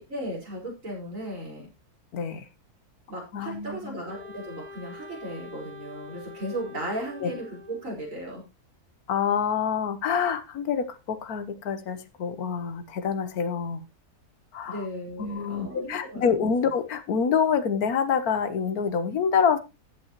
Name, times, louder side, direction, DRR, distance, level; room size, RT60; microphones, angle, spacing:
voice 1, 0.0-1.7 3.1-8.4 14.7-16.5, right 1 dB, 55° right, 5.2 m, -36 dB
voice 2, 2.1-2.5 3.3-4.0 7.2-7.3 9.1-13.8 14.5-14.9 15.2-19.6, left 6 dB, 70° left, 1.5 m, -26 dB
Wind instrument woodwind instrument, 4.1-8.0, left 3 dB, 30° right, 1.0 m, -45 dB
14.0 x 8.4 x 3.0 m
omnidirectional pair, 1.6 m